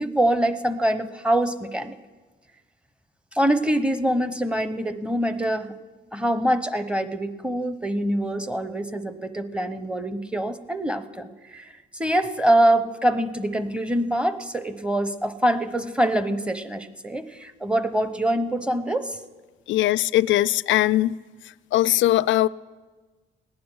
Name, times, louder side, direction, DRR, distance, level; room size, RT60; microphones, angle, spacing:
voice 1, 0.0-1.9 3.3-5.7 6.1-19.2, right 1 dB, 5° right, 12 dB, 0.8 m, -24 dB
voice 2, 19.7-21.1 21.7-22.5, left 14 dB, 70° left, 20 dB, 0.4 m, -20 dB
17.5 x 9.5 x 6.2 m, 1.3 s
cardioid pair, 90°, 20 cm